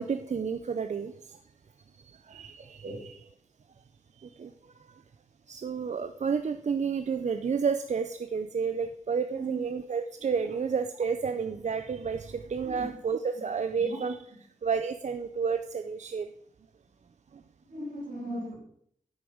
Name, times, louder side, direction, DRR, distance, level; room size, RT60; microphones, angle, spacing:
voice 1, 0.0-1.4 2.0-2.8 4.2-4.5 4.9-5.0 5.5-14.1 14.6-16.3, right 6 dB, 55° right, 9 dB, 0.5 m, -31 dB
voice 2, 17.7-18.5, right 1 dB, 85° right, -3 dB, 5.1 m, -37 dB
9.8 x 8.1 x 5.1 m, 0.69 s
wide cardioid pair, 140°, 14 cm